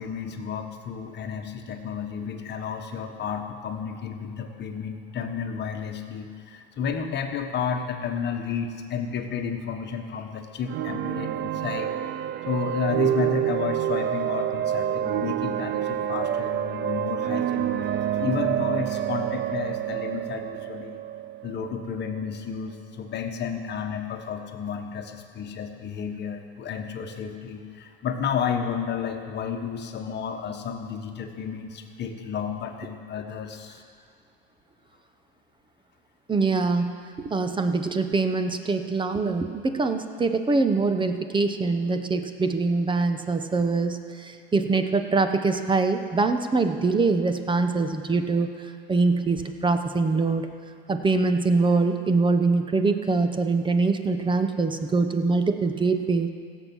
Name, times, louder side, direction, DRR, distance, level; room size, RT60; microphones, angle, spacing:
voice 1, 0.0-11.9 12.4-17.8 18.1-21.0 21.4-33.8, left 6 dB, 35° left, 4 dB, 1.4 m, -32 dB
sound 1, 10.7-22.3, right 11 dB, 35° right, 0.6 m, -28 dB
voice 2, 36.3-36.9 37.2-48.5 48.9-50.5 50.9-56.3, right 3 dB, 15° right, 7 dB, 0.9 m, -23 dB
16.5 x 7.4 x 6.2 m, 2.3 s
supercardioid pair, 115°, 30 cm